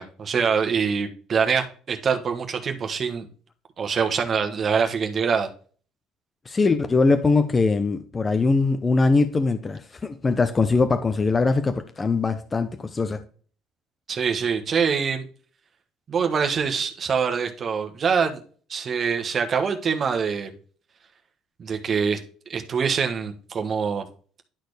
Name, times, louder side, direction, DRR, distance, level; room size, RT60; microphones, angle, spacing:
voice 1, 0.0-3.3 3.8-5.5 14.1-15.3 16.1-18.4 18.7-20.5 21.6-22.2 22.5-24.1, right 6 dB, 40° right, 1.4 m, -24 dB
voice 2, 6.5-13.2, left 3 dB, 25° left, 0.7 m, -21 dB
11.5 x 4.3 x 3.3 m
cardioid pair, 105°, 0 cm